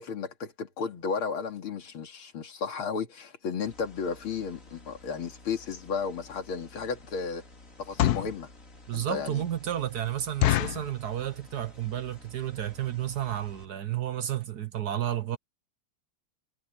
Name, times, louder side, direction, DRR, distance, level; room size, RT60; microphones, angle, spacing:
voice 1, 0.0-7.4 7.8-8.5 8.9-9.4, left 5 dB, 85° left, 3.0 m, -33 dB
sound 1, 3.6-13.7, left 2 dB, 40° left, 4.1 m, -52 dB
sound 2, 6.2-6.3 6.8-7.0 7.7-8.4 8.9-9.0 9.4-9.5 9.8-9.9 10.4-10.9 11.5-11.8 12.1-12.2 12.4-12.6 13.2-13.3 13.5-13.7 14.0-14.1 14.3-14.4, left 13 dB, 65° left, 1.0 m, -26 dB
voice 2, 8.9-15.4, right 11 dB, 60° right, 1.2 m, -32 dB
omnidirectional pair, 2.3 m